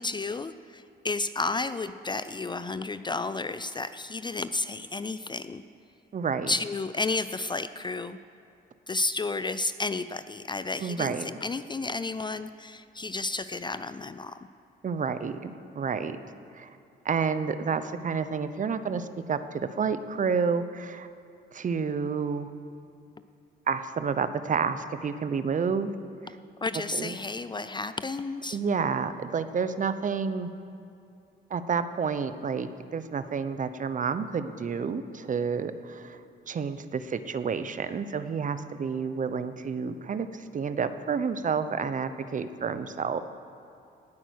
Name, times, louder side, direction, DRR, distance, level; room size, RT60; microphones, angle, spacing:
voice 1, 0.0-5.6 6.5-8.2 8.9-14.4 26.6-28.6, left 3 dB, 25° left, 13 dB, 0.4 m, -32 dB
voice 2, 6.1-6.5 10.8-11.3 14.8-16.2 16.5-16.7 17.0-21.1 21.5-22.5 23.7-25.9 26.9-27.2 28.5-30.5 31.5-36.2 36.5-43.2, right 5 dB, 40° right, 12 dB, 0.8 m, -30 dB
18.5 x 8.9 x 6.4 m, 2.5 s
cardioid pair, 90°, 20 cm